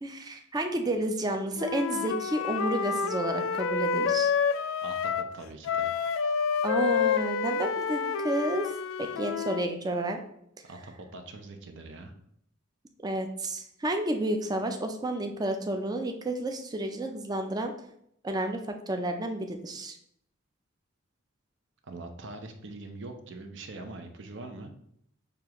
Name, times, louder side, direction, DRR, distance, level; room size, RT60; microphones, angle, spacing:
voice 1, 0.0-4.3 6.6-8.7 9.0-10.2 13.0-17.7 18.2-18.6 18.9-20.0, right 1 dB, 20° right, 5 dB, 0.4 m, -31 dB
Wind instrument woodwind instrument, 1.6-5.3 5.6-9.7, left 6 dB, 85° left, 0.3 m, -29 dB
voice 2, 4.8-5.9 10.7-12.1 21.8-24.7, right 2 dB, 65° right, 5 dB, 0.6 m, -43 dB
6.6 x 2.4 x 2.9 m, 0.71 s
head